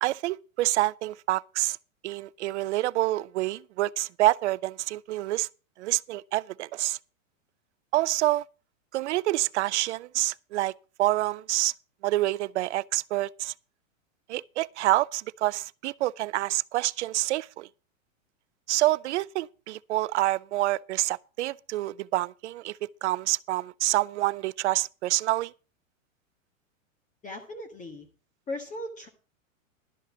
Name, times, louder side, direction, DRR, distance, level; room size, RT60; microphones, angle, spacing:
voice 1, 0.0-1.8 2.0-5.5 5.8-7.0 7.9-8.4 8.9-10.7 11.0-11.7 12.0-13.5 14.3-17.7 18.7-25.5, right 16 dB, 60° right, 0.5 m, -27 dB
voice 2, 27.2-28.1 28.5-29.1, left 1 dB, 20° left, 1.7 m, -37 dB
12.5 x 5.6 x 7.1 m
hypercardioid pair, 120°, 40 cm